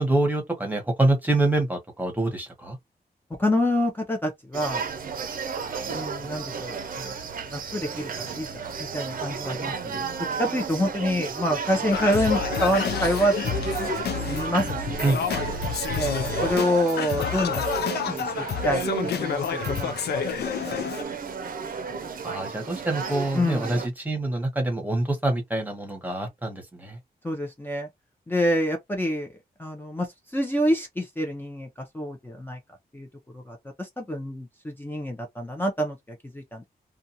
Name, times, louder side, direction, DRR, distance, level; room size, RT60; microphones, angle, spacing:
voice 1, 0.0-2.8 15.0-15.2 22.2-27.0, right 2 dB, 10° right, 1.0 m, -26 dB
voice 2, 3.4-4.8 5.8-7.1 7.5-8.6 8.9-10.0 10.4-13.8 14.3-15.2 15.9-19.9 20.6-20.8 23.3-23.8 27.2-27.9 28.3-29.3 29.6-31.7 31.9-32.6 32.9-33.1 33.3-36.6, equal, 10° left, 0.6 m, -27 dB
sound 1, 4.5-23.9, right 5 dB, 60° right, 0.6 m, -33 dB
Singing, 11.9-21.0, left 7 dB, 85° left, 0.4 m, -29 dB
2.5 x 2.3 x 2.7 m
wide cardioid pair, 160°, 16 cm